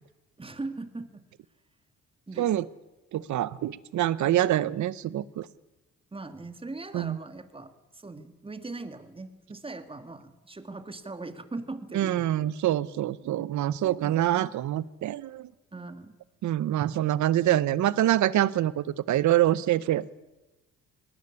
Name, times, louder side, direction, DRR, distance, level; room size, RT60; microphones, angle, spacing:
voice 1, 0.4-1.2 2.3-2.6 6.1-12.3 15.7-16.2, right 3 dB, 20° right, 10 dB, 2.0 m, -40 dB
voice 2, 3.1-5.5 6.9-7.2 11.9-15.5 16.4-20.1, right 13 dB, 70° right, 19 dB, 0.9 m, -25 dB
19.5 x 19.0 x 9.9 m, 1.0 s
cardioid pair, 90°, 30 cm